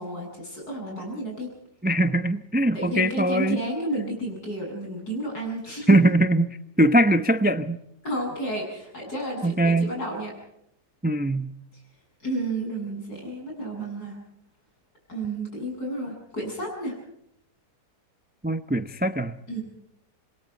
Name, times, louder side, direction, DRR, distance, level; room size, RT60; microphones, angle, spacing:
voice 1, 0.0-1.5 2.7-5.9 8.0-10.3 12.2-14.2 15.1-17.0 19.5-19.6, right 1 dB, 65° left, 1 dB, 8.6 m, -31 dB
voice 2, 1.8-3.6 5.9-6.5 6.8-7.8 9.4-9.9 11.0-11.5 18.4-19.4, right 1 dB, 15° right, 11 dB, 0.3 m, -21 dB
27.5 x 22.5 x 4.5 m, 0.76 s
omnidirectional pair, 1.8 m